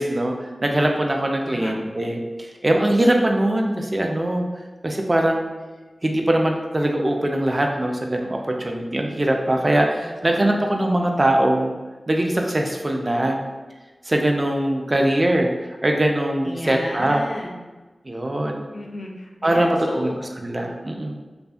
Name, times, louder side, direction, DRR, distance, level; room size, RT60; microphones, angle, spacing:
voice 1, 0.0-4.4 4.8-5.5 6.0-11.7 12.1-13.4 14.1-17.2 18.1-18.6 19.4-20.1 20.4-21.2, right 1 dB, 35° right, 2 dB, 0.4 m, -22 dB
voice 2, 1.4-1.7 10.0-10.2 10.5-11.2 16.4-17.6 18.7-20.2, left 1 dB, 65° left, 0 dB, 0.4 m, -33 dB
2.5 x 2.4 x 2.3 m, 1.2 s
wide cardioid pair, 50°, 0 cm